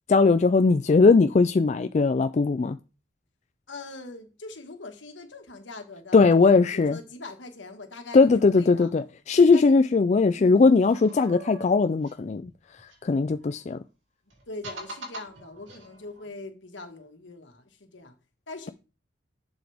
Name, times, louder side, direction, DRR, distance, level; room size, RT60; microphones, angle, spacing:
voice 1, 0.1-2.8 6.1-7.0 8.1-12.5 13.0-13.8, left 4 dB, 40° left, 0.3 m, -19 dB
voice 2, 3.7-8.9 9.3-9.9 10.3-11.3 13.4-13.5 14.5-18.1 18.5-18.7, left 2 dB, 80° left, 1.7 m, -42 dB
sound 1, 10.8-13.6 14.3-16.3, right 1 dB, 80° right, 2.8 m, -44 dB
11.0 x 7.1 x 3.5 m
head